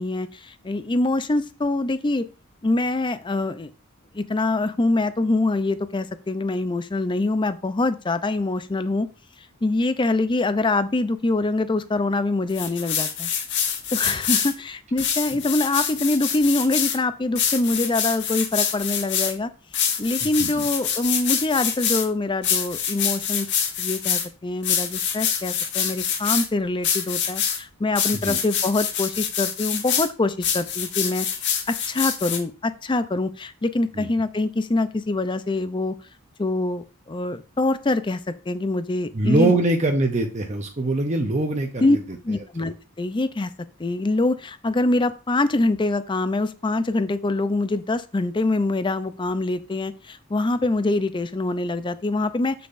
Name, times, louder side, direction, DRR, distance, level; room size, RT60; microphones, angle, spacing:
voice 1, 0.0-2.3 2.6-3.7 4.1-9.1 9.6-13.3 13.9-19.5 20.0-23.5 23.8-31.3 31.7-35.9 36.4-38.2 38.5-39.6 41.8-42.0 42.2-43.5 43.8-52.7, left 2 dB, 20° left, 13 dB, 0.5 m, -24 dB
sound 1, 12.5-14.5 15.0-17.0 17.4-19.3 19.7-22.1 22.4-24.3 24.6-26.5 26.8-27.6 27.9-30.1 30.4-32.4, left 8 dB, 55° left, 1.2 m, -25 dB
voice 2, 20.2-20.7 28.2-28.4 33.9-34.1 39.1-42.0 42.6-42.7, right 2 dB, 35° right, 4 dB, 0.8 m, -23 dB
7.3 x 6.7 x 2.6 m, 0.33 s
head